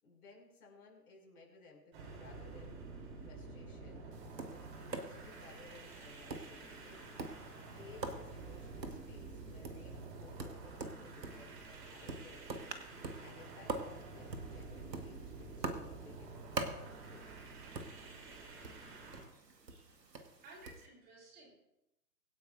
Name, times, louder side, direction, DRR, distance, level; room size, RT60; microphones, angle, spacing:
voice 1, 0.0-2.8 3.2-4.1 4.5-7.0 7.7-12.7 13.2-17.3, left 4 dB, 60° left, 0 dB, 6.0 m, -59 dB
sound 1, 1.9-19.3, right 3 dB, 35° right, 3.3 m, -50 dB
Tap, 4.1-20.9, right 3 dB, 75° right, 1.7 m, -46 dB
voice 2, 19.7-20.1 20.4-21.6, right 2 dB, 20° right, 0 dB, 3.6 m, -57 dB
24.5 x 9.9 x 2.6 m, 0.89 s
figure-of-eight pair, 125°, 50 cm